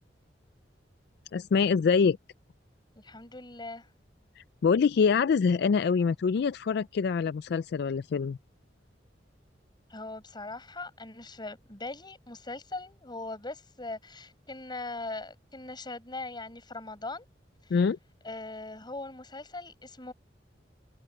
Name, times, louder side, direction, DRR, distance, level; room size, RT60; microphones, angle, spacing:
voice 1, 1.3-2.2 4.4-8.4 17.7-18.0, left 5 dB, 65° left, 0.3 m, -25 dB
voice 2, 3.0-3.9 9.9-17.2 18.2-20.1, left 2 dB, 25° left, 6.7 m, -40 dB
head